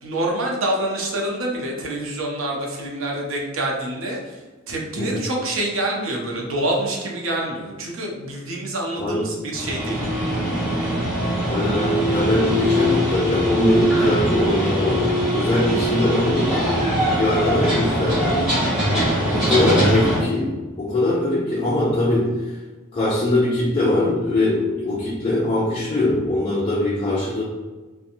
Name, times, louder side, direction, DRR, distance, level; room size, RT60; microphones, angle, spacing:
voice 1, 0.0-4.4 4.7-10.0 15.6-15.7, right 1 dB, 75° right, -1 dB, 0.7 m, -26 dB
sound 1, 9.5-20.2, equal, 5° right, 0.9 m, -21 dB
voice 2, 11.5-16.7 17.2-18.4 19.3-22.6 22.9-27.4, left 2 dB, 25° left, -5 dB, 0.3 m, -22 dB
2.9 x 2.1 x 2.5 m, 1.3 s
head